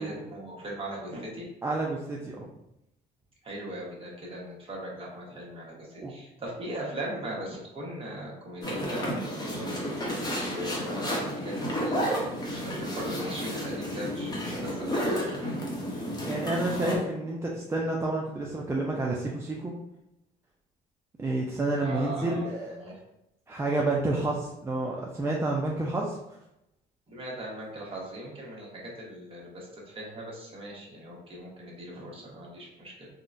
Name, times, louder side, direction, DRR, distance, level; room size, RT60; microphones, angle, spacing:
voice 1, 0.0-1.4 3.4-9.7 10.4-15.5 16.8-17.0 21.8-23.0 27.1-33.1, right 1 dB, 35° right, -3 dB, 1.0 m, -39 dB
voice 2, 1.6-2.5 5.7-6.1 16.2-19.7 21.2-22.8 23.5-26.2, right 2 dB, 15° right, -3 dB, 0.3 m, -29 dB
sound 1, 8.6-17.0, equal, 25° left, 0.8 m, -32 dB
3.7 x 2.1 x 2.5 m, 0.86 s
cardioid pair, 110°, 17 cm